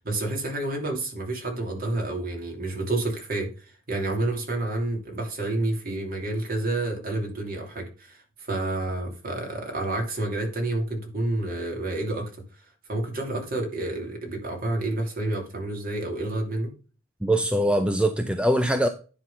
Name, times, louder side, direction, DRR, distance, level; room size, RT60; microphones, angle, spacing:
voice 1, 0.0-12.3 12.9-16.7, right 2 dB, 45° right, 2.8 m, -29 dB
voice 2, 17.2-18.9, right 1 dB, 5° right, 0.5 m, -22 dB
10.0 x 3.9 x 5.6 m
head